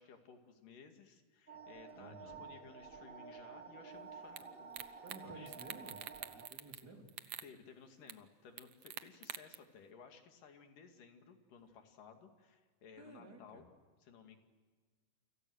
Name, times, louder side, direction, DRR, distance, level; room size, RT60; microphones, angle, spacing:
voice 1, 0.0-5.5 7.4-13.7 14.0-14.4, left 6 dB, 80° left, 5 dB, 4.0 m, -58 dB
sound 1, 1.5-6.5, right 5 dB, 55° right, 0.6 m, -51 dB
voice 2, 1.9-2.5 5.0-6.0 6.3-7.1 13.0-13.6, right 2 dB, 30° right, 2 dB, 3.7 m, -54 dB
sound 2, 4.4-4.5 4.7-5.2 5.5-6.8 7.1-7.5 8.1-8.2 8.6-9.5, right 11 dB, 75° right, 1.3 m, -45 dB
29.0 x 26.0 x 6.5 m, 1.5 s
omnidirectional pair, 3.8 m